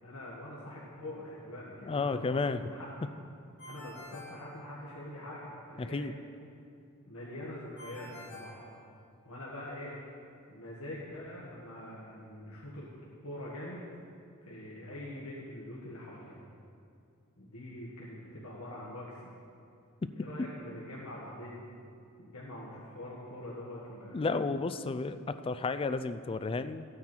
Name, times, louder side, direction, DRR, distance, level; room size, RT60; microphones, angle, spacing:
voice 1, 0.0-3.0 3.6-6.1 7.0-8.7 9.2-9.9 10.5-12.9 13.2-13.9 14.4-16.4 17.4-19.3 20.2-21.6 22.2-24.2, left 1 dB, 70° left, -6 dB, 1.7 m, -44 dB
voice 2, 1.8-2.7 5.8-6.1 20.0-20.3 24.1-26.9, left 3 dB, 25° left, 12 dB, 0.3 m, -32 dB
Ringtone, 3.6-5.2 7.8-9.4, left 1 dB, 55° left, 2.6 m, -50 dB
14.5 x 9.5 x 4.5 m, 2.4 s
head